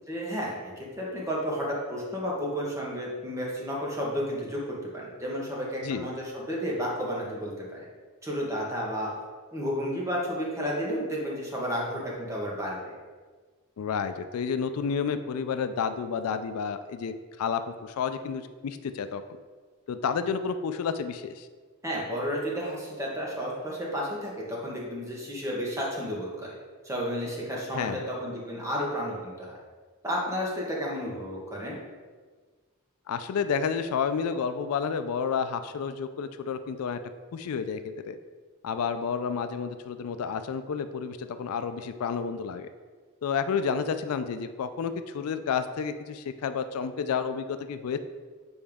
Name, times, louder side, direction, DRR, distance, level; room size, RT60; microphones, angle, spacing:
voice 1, 0.1-7.8 8.2-9.1 9.5-12.9 21.8-26.5 26.8-29.6 30.0-31.8, equal, 15° right, -4 dB, 1.3 m, -32 dB
voice 2, 13.8-19.2 19.9-21.5 27.7-28.0 33.1-37.0 37.3-37.8 38.1-38.2 38.6-42.7 43.2-48.0, left 6 dB, 90° left, 10 dB, 0.4 m, -30 dB
7.0 x 4.3 x 3.6 m, 1.5 s
head